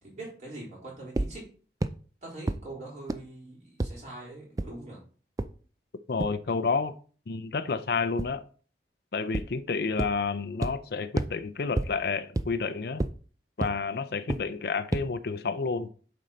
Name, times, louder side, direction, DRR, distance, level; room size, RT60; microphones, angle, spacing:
voice 1, 0.0-1.5 2.2-5.0, right 2 dB, 40° right, 3.9 m, -43 dB
sound 1, 1.2-1.3 1.8-1.9 2.5-2.6 3.1-3.2 3.8-3.9 4.6-4.7 5.4-5.5 6.2-6.3 8.2-8.3 9.3-9.4 10.0-10.1 10.6-10.7 11.2-11.3 11.8-11.9 12.4-12.5 13.0-13.1 13.6-13.7 14.3-14.4 14.9-15.0, right 2 dB, 20° right, 0.3 m, -27 dB
voice 2, 6.1-6.9 7.3-8.4 9.1-13.0 13.6-15.9, left 4 dB, 60° left, 0.5 m, -30 dB
7.5 x 5.2 x 4.0 m
head